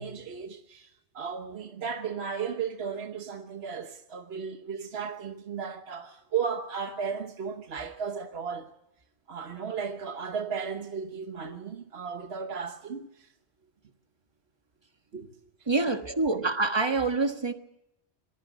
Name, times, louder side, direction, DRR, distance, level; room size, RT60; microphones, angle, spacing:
voice 1, 0.0-8.7 9.3-13.3 15.1-15.3 15.9-16.5, right 6 dB, 70° right, 1.4 m, -35 dB
voice 2, 15.7-17.5, right 3 dB, 25° right, 1.5 m, -26 dB
26.5 x 21.5 x 5.1 m
omnidirectional pair, 1.1 m